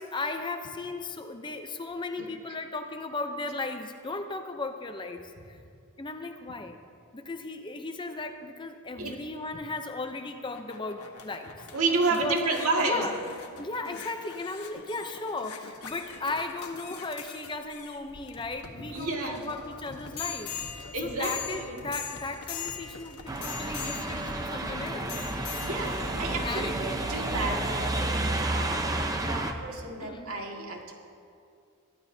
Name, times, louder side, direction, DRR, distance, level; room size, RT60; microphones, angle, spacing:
voice 1, 0.0-5.6 6.0-6.8 7.1-11.7 12.1-13.2 13.6-25.2 26.4-26.9 28.6-28.8 30.0-30.3, left 3 dB, 20° left, 6 dB, 0.6 m, -36 dB
sound 1, 10.2-27.8 28.4-28.5, left 6 dB, 90° left, 1.4 m, -42 dB
voice 2, 11.7-13.1 18.8-19.4 20.9-21.8 25.6-27.6 27.9-28.8 29.2-30.9, right 3 dB, 75° right, 0 dB, 2.0 m, -31 dB
sound 2, 23.3-29.5, right 2 dB, 15° right, 0.7 m, -31 dB
22.5 x 14.0 x 2.7 m, 2.4 s
head